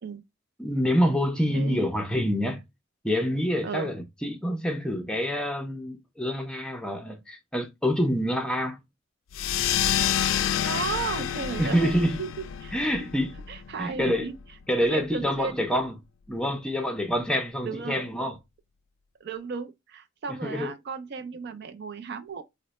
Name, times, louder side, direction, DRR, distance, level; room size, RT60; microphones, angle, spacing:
voice 1, 0.6-2.6 3.0-8.8 11.6-12.2 12.7-13.3 13.8-14.3 14.7-15.9 16.3-18.4 20.3-20.7, equal, 5° left, 0.5 m, -26 dB
voice 2, 1.5-1.9 3.6-3.9 10.6-13.1 13.5-14.3 14.7-15.6 17.6-18.0 19.2-22.4, right 5 dB, 55° right, 0.4 m, -34 dB
sound 1, 9.3-14.4, left 9 dB, 80° left, 0.4 m, -28 dB
3.9 x 2.0 x 2.9 m
head